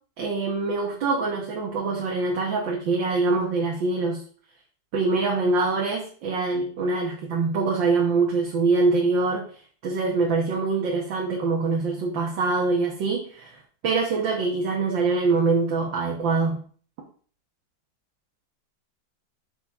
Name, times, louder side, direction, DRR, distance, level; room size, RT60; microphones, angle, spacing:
voice 1, 0.2-4.2 4.9-9.4 9.8-16.6, right 3 dB, 90° right, -1 dB, 2.1 m, -24 dB
8.5 x 6.4 x 3.6 m, 0.44 s
omnidirectional pair, 2.0 m